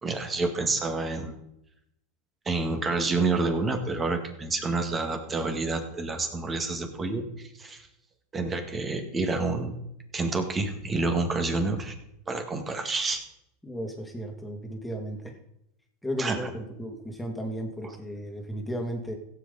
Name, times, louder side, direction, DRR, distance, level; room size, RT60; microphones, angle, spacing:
voice 1, 0.0-1.3 2.5-7.9 8.3-9.7 10.1-11.9 12.3-13.2 16.2-16.4, right 3 dB, 20° right, 6 dB, 2.0 m, -28 dB
voice 2, 13.6-15.3 16.0-19.1, equal, 5° left, 1 dB, 2.4 m, -34 dB
16.5 x 7.8 x 4.1 m, 0.80 s
supercardioid pair, 120°, 0 cm